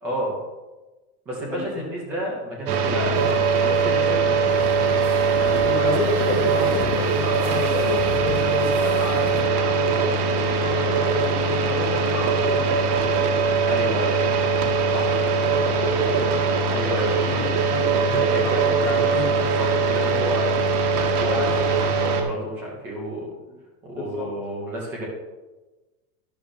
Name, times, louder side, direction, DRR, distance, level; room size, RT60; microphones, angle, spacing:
voice 1, 0.0-0.4 1.3-6.0 13.6-14.2 14.9-15.1 16.7-17.4 18.0-20.5 20.9-21.5 21.8-23.3 23.8-25.1, equal, 5° right, -3 dB, 0.3 m, -31 dB
voice 2, 1.5-1.9 5.6-13.4 17.1-17.9 18.4-19.4 21.2-21.5 23.5-23.6 23.9-24.3, left 5 dB, 55° left, -2 dB, 2.4 m, -32 dB
sound 1, 2.7-22.2, right 4 dB, 85° right, 1.6 m, -21 dB
sound 2, 3.1-9.5, right 2 dB, 35° right, 1.8 m, -37 dB
11.5 x 11.5 x 2.6 m, 1.2 s
supercardioid pair, 175°, 44 cm